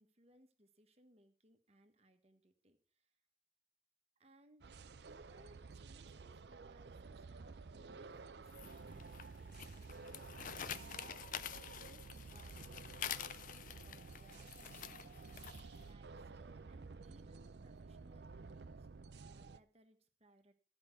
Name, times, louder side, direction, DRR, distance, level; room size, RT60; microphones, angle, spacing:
voice 1, 0.0-3.1 4.2-4.7 5.1-10.5 10.8-11.3 11.8-15.2 15.7-18.9 19.3-20.6, right 1 dB, 35° right, 7 dB, 1.3 m, -67 dB
sound 1, 4.6-19.6, right 4 dB, 70° right, 0.5 m, -52 dB
sound 2, 8.5-15.8, left 9 dB, 50° left, 0.5 m, -48 dB
sound 3, 14.6-15.7, left 1 dB, 15° left, 1.4 m, -68 dB
14.0 x 5.2 x 7.9 m, 0.44 s
head